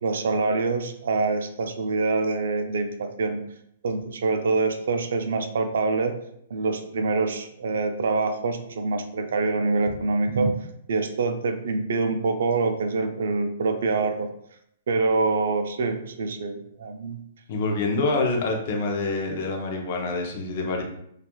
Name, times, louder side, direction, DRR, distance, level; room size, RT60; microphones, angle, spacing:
voice 1, 0.0-3.4 3.8-6.2 6.5-10.6 10.9-14.3 14.9-17.2, right 3 dB, 70° right, 7 dB, 0.3 m, -25 dB
voice 2, 17.5-20.8, left 3 dB, 40° left, 1 dB, 0.5 m, -26 dB
2.9 x 2.3 x 2.2 m, 0.73 s
hypercardioid pair, 175°, 0 cm